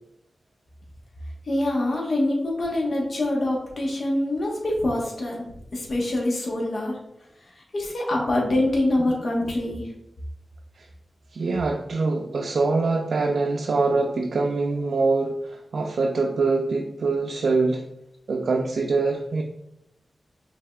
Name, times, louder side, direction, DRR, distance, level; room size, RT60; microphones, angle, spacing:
voice 1, 1.5-5.4 5.7-7.0 7.7-9.9, left 1 dB, 60° left, -2 dB, 1.1 m, -25 dB
voice 2, 11.3-17.8 18.3-19.4, right 3 dB, 80° right, 1 dB, 0.4 m, -24 dB
5.5 x 3.5 x 2.3 m, 0.81 s
wide cardioid pair, 120°, 0 cm